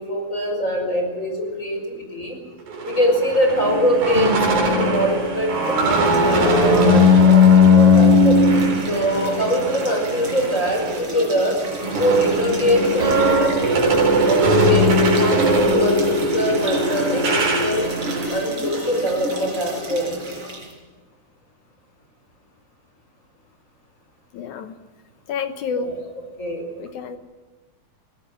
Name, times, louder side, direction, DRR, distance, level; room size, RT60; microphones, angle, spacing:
voice 1, 0.0-2.4 2.8-8.4 8.9-11.6 12.0-13.5 14.2-17.9 18.3-20.1 25.7-26.0 26.4-26.7, equal, 20° left, 3 dB, 5.2 m, -23 dB
sound 1, 2.7-11.1 11.4-18.3, left 2 dB, 80° right, 5.9 m, -18 dB
sound 2, 5.6-20.7, right 1 dB, 40° right, 5.3 m, -32 dB
voice 2, 24.3-24.7 25.3-26.0 26.8-27.2, left 6 dB, 65° left, 8 dB, 2.3 m, -29 dB
21.5 x 17.5 x 7.7 m, 1.3 s
omnidirectional pair, 4.0 m